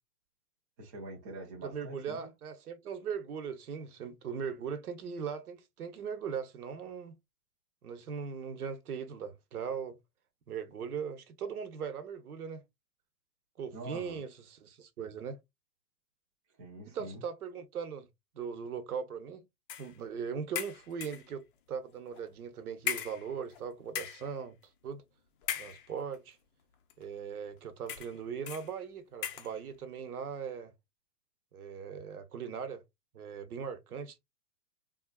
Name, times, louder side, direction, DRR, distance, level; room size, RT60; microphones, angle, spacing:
voice 1, 0.8-2.3 13.7-14.3 16.6-17.2, right 2 dB, 15° right, 0.4 m, -45 dB
voice 2, 1.6-7.2 7.8-10.0 10.5-12.6 13.6-15.4 16.9-18.1 18.3-19.4 19.8-24.6 24.8-25.0 25.6-26.4 27.0-30.7 31.5-32.8 33.1-34.2, right 6 dB, 65° right, 0.9 m, -39 dB
sound 1, 19.7-20.0 20.6-21.3 22.1-22.3 22.9-23.6 23.9-24.3 25.4-26.2 26.9-27.0 27.9-28.2 28.5-28.7 29.2-29.6, left 9 dB, 35° left, 0.6 m, -38 dB
3.6 x 2.4 x 2.3 m
hypercardioid pair, 125°, 47 cm